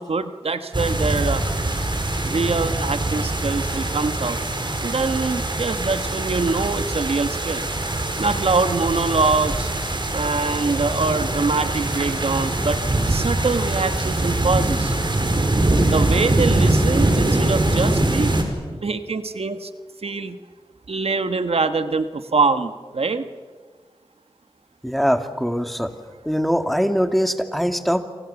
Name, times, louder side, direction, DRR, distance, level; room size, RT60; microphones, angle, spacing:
voice 1, 0.0-1.4 2.2-4.4 4.8-7.7 8.2-9.7 10.1-12.8 13.1-14.9 15.8-18.3 18.8-19.7 20.0-20.4 20.9-23.3, right 4 dB, 85° right, 9 dB, 1.4 m, -24 dB
sound 1, 0.7-18.4, right 2 dB, 55° right, 5.2 m, -23 dB
voice 2, 24.8-25.9 26.3-28.0, equal, ahead, 6 dB, 2.6 m, -22 dB
28.0 x 27.5 x 7.1 m, 1.5 s
wide cardioid pair, 45°, 10 cm